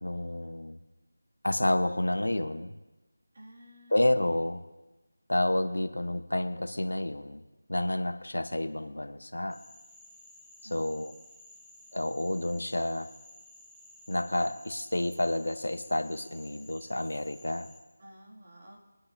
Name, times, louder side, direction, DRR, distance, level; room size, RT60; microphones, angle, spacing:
voice 1, 0.0-0.8 1.4-2.7 3.9-4.6 5.3-7.4 7.7-9.6 10.7-11.1 11.9-13.1 14.1-17.7, left 1 dB, 90° left, 9 dB, 1.0 m, -29 dB
voice 2, 3.3-4.4 10.6-11.0 18.0-18.8, right 1 dB, 45° right, -3 dB, 2.5 m, -52 dB
Frog, 9.5-17.8, left 1 dB, ahead, 0.5 m, -54 dB
25.0 x 9.8 x 2.8 m, 1.1 s
figure-of-eight pair, 170°, 0 cm